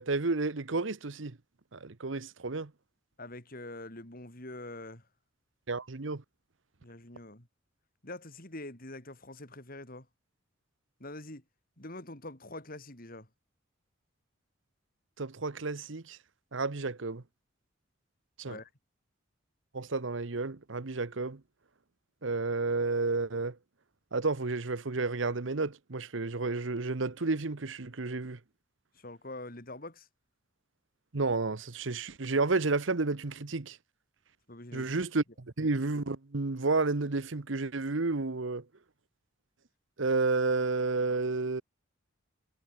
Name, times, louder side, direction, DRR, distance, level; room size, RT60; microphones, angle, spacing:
voice 1, 0.0-1.4 1.7-2.7 5.7-6.2 15.2-16.2 16.5-17.2 18.4-18.6 19.7-21.4 22.2-23.6 24.1-28.4 31.1-33.8 34.7-38.6 40.0-41.6, right 3 dB, 70° right, 1.0 m, -31 dB
voice 2, 3.2-5.0 6.8-7.5 8.0-10.1 11.0-11.4 11.8-13.3 18.4-18.7 28.9-30.1 34.5-34.9, left 2 dB, 45° left, 4.4 m, -44 dB
head